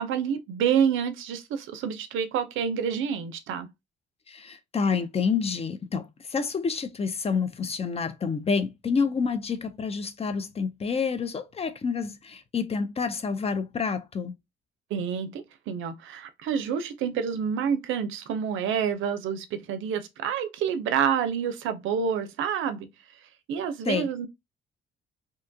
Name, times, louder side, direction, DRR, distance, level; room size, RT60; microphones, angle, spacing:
voice 1, 0.0-3.7 14.9-22.9 23.5-24.3, right 7 dB, 80° right, 0.5 m, -28 dB
voice 2, 4.3-14.3 23.8-24.1, left 5 dB, 30° left, 0.4 m, -28 dB
2.7 x 2.2 x 2.5 m
cardioid pair, 90°, 20 cm